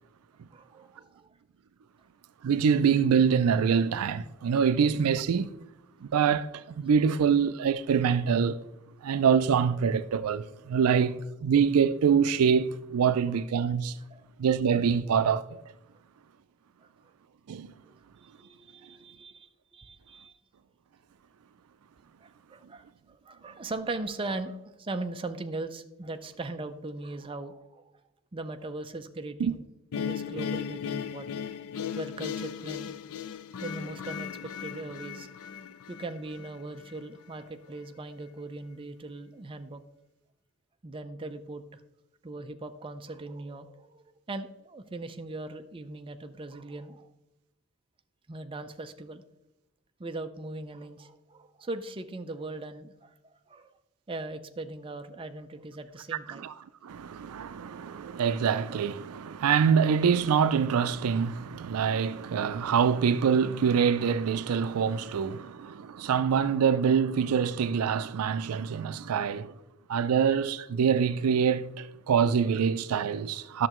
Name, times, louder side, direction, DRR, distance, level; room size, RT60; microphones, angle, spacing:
voice 1, 0.5-1.3 13.0-13.4 14.1-14.3 17.9-20.4 22.2-27.9 28.3-29.7 29.9-31.3 31.9-33.0 33.6-35.3 35.9-39.8 40.8-41.8 42.2-47.1 48.3-49.2 50.0-53.7 54.1-56.5, right 2 dB, 25° right, 0.5 m, -39 dB
voice 2, 2.4-5.5 6.1-8.6 9.0-13.9 14.4-15.4 17.5-17.7 29.4-29.5 56.3-56.5 56.8-69.5 69.9-73.7, right 7 dB, 80° right, 0.4 m, -25 dB
sound 1, 29.9-37.0, left 7 dB, 75° left, 0.5 m, -37 dB
11.0 x 6.6 x 3.0 m
head